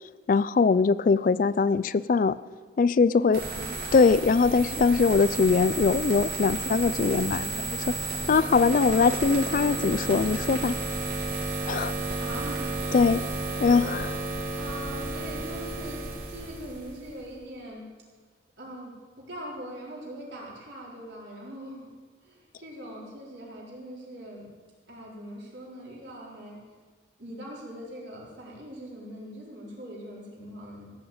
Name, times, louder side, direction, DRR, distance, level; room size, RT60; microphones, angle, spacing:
voice 1, 0.3-2.4 2.8-3.4 3.9-7.9 8.3-10.8 11.7-11.9 12.9-13.3 13.6-14.1, left 4 dB, 45° left, 17 dB, 0.3 m, -22 dB
voice 2, 3.1-3.7 12.2-12.7 13.8-14.2 14.6-17.9 18.6-21.9 22.2-24.5 24.9-26.6 27.2-30.9, right 1 dB, 70° right, -4 dB, 4.1 m, -41 dB
sound 1, 3.3-17.1, right 2 dB, 50° right, 3.3 m, -32 dB
15.5 x 7.2 x 8.7 m, 1.5 s
head